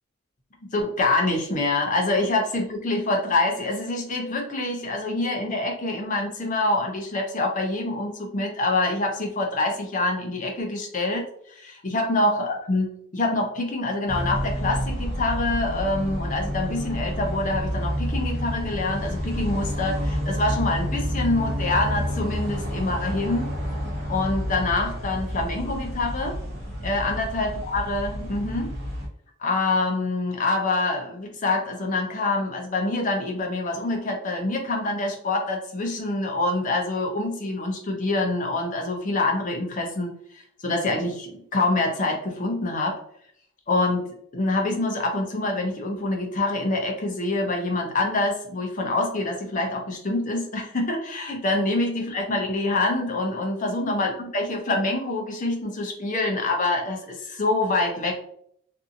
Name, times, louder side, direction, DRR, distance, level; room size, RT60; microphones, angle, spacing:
voice 1, 0.6-11.2 11.5-23.5 24.1-26.4 26.8-28.7 29.4-43.0 43.7-58.2, left 2 dB, 35° left, 2 dB, 0.5 m, -26 dB
sound 1, 14.1-29.1, equal, 50° right, 0.8 m, -29 dB
2.6 x 2.5 x 2.5 m, 0.67 s
head